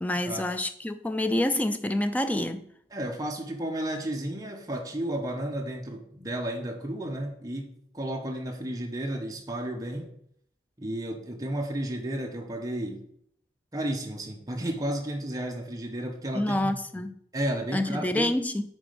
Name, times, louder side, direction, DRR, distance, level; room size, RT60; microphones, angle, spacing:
voice 1, 0.0-2.7 16.3-17.1 17.7-18.6, left 1 dB, 10° left, 0.4 m, -27 dB
voice 2, 2.9-10.2 10.8-13.1 13.7-16.7 17.0-17.1 17.3-18.3, right 1 dB, 20° right, 1.0 m, -33 dB
9.6 x 4.3 x 5.1 m
head